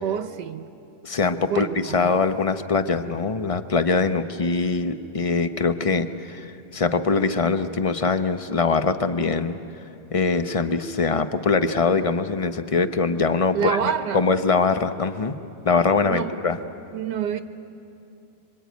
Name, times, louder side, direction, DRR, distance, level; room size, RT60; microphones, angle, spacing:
voice 1, 0.0-0.7 1.5-2.1 13.5-14.2 16.0-16.5 16.9-17.4, right 8 dB, 85° right, 10 dB, 1.5 m, -27 dB
voice 2, 1.0-1.7 1.9-9.6 10.1-15.3 15.6-16.6, left 4 dB, 35° left, 10 dB, 0.5 m, -23 dB
26.0 x 24.5 x 9.3 m, 2.7 s
omnidirectional pair, 1.8 m